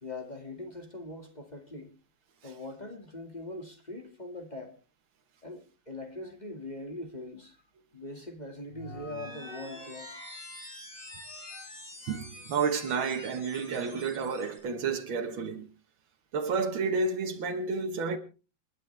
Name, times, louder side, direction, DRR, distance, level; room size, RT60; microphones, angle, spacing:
voice 1, 0.0-1.9 2.4-4.7 5.4-7.6 7.9-10.2, left 2 dB, 20° left, 2.1 m, -42 dB
sound 1, 8.7-14.6, left 1 dB, 40° left, 6.0 m, -46 dB
voice 2, 12.1-15.7 16.3-18.2, right 4 dB, 85° right, 2.0 m, -30 dB
29.0 x 10.5 x 3.3 m
omnidirectional pair, 2.1 m